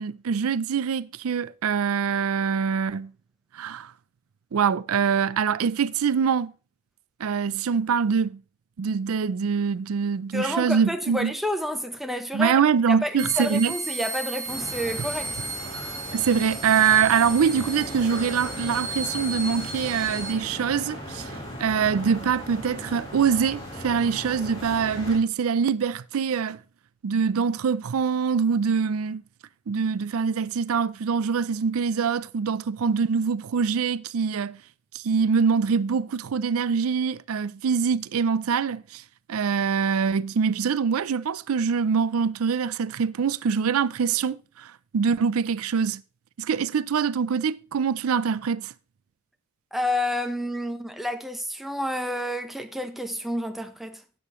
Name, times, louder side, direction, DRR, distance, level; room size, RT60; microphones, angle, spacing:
voice 1, 0.0-3.1 3.5-3.9 4.5-6.5 7.2-8.4 8.8-11.3 12.3-13.8 15.0-15.1 16.1-26.6 27.0-29.2 29.7-34.6 34.9-39.0 39.3-46.0 46.4-48.7, right 6 dB, 85° right, 0.4 m, -24 dB
voice 2, 10.3-12.6 12.9-15.4 49.7-54.0, equal, ahead, 0.9 m, -29 dB
sound 1, 13.2-20.3, right 3 dB, 55° right, 1.9 m, -35 dB
sound 2, 14.4-25.2, equal, 30° left, 5.9 m, -37 dB
12.5 x 8.6 x 3.1 m
head